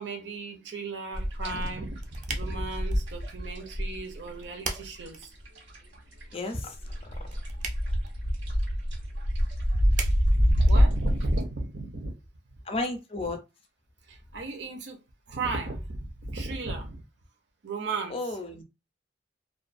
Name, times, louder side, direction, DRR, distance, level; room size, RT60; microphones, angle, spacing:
voice 1, 0.0-5.3 10.5-12.1 14.1-15.0 15.3-17.0 17.6-18.2, right 3 dB, 70° right, 0.7 m, -35 dB
sound 1, 1.1-6.0 6.2-11.4, equal, 85° right, 1.3 m, -26 dB
sound 2, 1.5-11.4, right 5 dB, 40° right, 0.4 m, -43 dB
voice 2, 6.3-6.7 7.0-7.3 12.7-13.4 18.1-18.6, left 2 dB, 30° left, 0.4 m, -33 dB
2.4 x 2.3 x 2.5 m
head